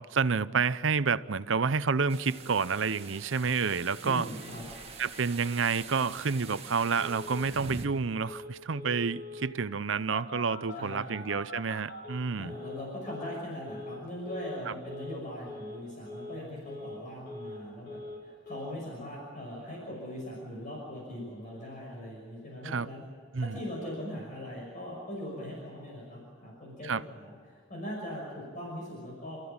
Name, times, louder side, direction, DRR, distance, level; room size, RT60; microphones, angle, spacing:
voice 1, 0.0-4.3 5.0-12.5 14.7-14.8 22.6-22.9 23.3-23.6 26.8-27.0, right 5 dB, 85° right, 0.7 m, -29 dB
sound 1, 2.1-7.9, right 4 dB, 30° right, 1.7 m, -45 dB
Telephone, 3.3-3.4 3.7-3.8 4.1-4.2 4.4-4.9 5.1-5.2 5.5-5.8 6.2-6.3 6.8-7.5 8.3-8.5 8.8-9.5 10.1-12.8 13.1-13.4 13.7-14.0 14.3-14.6 14.9-15.2 15.5-15.8 16.1-16.4 16.7-17.6 17.9-18.2 18.5-18.7, left 3 dB, 60° left, 5.8 m, -43 dB
voice 2, 4.0-4.7 10.7-11.2 12.3-23.0 23.4-29.4, left 1 dB, 45° left, 6.0 m, -40 dB
29.0 x 14.5 x 8.7 m
head